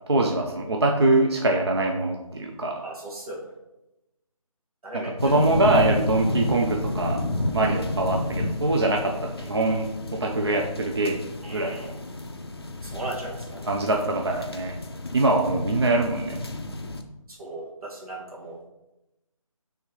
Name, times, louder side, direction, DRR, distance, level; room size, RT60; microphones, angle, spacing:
voice 1, 0.1-2.8 4.9-7.2 7.5-12.0 13.7-14.8 15.1-16.4, right 2 dB, 45° right, 1 dB, 0.4 m, -24 dB
voice 2, 2.8-3.4 4.8-5.8 11.4-11.9 12.8-13.7 17.3-18.7, right 2 dB, 90° right, -3 dB, 1.6 m, -37 dB
sound 1, 5.2-17.0, left 2 dB, 45° left, 0.4 m, -31 dB
5.5 x 3.3 x 2.9 m, 0.95 s
figure-of-eight pair, 180°, 18 cm